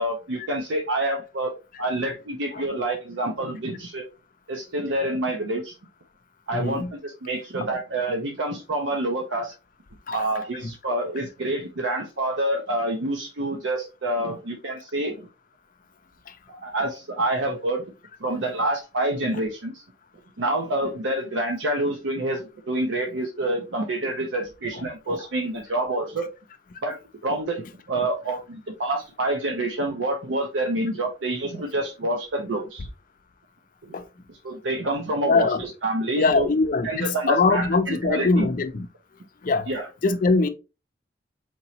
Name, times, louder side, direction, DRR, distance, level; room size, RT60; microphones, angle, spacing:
voice 1, 0.0-1.5 1.8-4.1 4.5-5.7 6.5-9.5 10.1-15.3 16.5-17.8 18.2-19.8 20.4-26.3 26.8-32.9 34.4-36.5 36.8-38.5 39.7-39.9, right 1 dB, 80° right, 0.7 m, -27 dB
voice 2, 6.5-6.9 10.1-10.3 16.3-16.4 33.9-34.1 35.2-35.6 36.2-38.9 39.4-39.7 40.0-40.5, left 3 dB, 45° left, 0.5 m, -22 dB
4.5 x 2.9 x 2.7 m
head